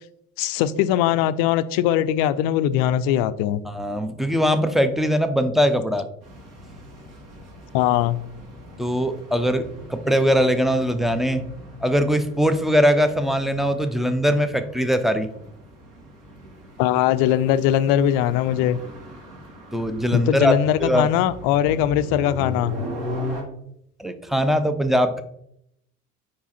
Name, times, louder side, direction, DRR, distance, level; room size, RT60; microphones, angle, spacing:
voice 1, 0.4-3.6 7.7-8.2 16.8-18.8 20.1-22.7, left 11 dB, 50° left, 14 dB, 0.5 m, -21 dB
voice 2, 3.6-6.0 8.8-11.5 11.8-15.3 19.7-20.5 20.8-21.1 24.0-25.2, equal, ahead, 9 dB, 0.5 m, -21 dB
sound 1, 6.2-23.4, left 1 dB, 55° right, 2.2 m, -38 dB
4.9 x 4.6 x 4.2 m, 0.74 s
figure-of-eight pair, 60°, 46 cm